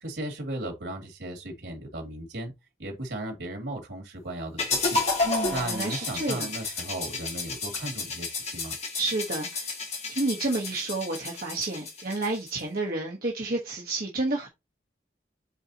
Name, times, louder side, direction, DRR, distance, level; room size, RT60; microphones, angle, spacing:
voice 1, 0.0-2.5 2.8-5.0 5.5-8.7, right 1 dB, 85° right, 2.7 m, -36 dB
sound 1, 4.6-12.6, left 3 dB, 40° left, 1.9 m, -31 dB
voice 2, 5.2-6.5 8.9-9.7 10.1-14.5, right 2 dB, 55° right, 1.2 m, -30 dB
8.6 x 4.1 x 2.9 m
head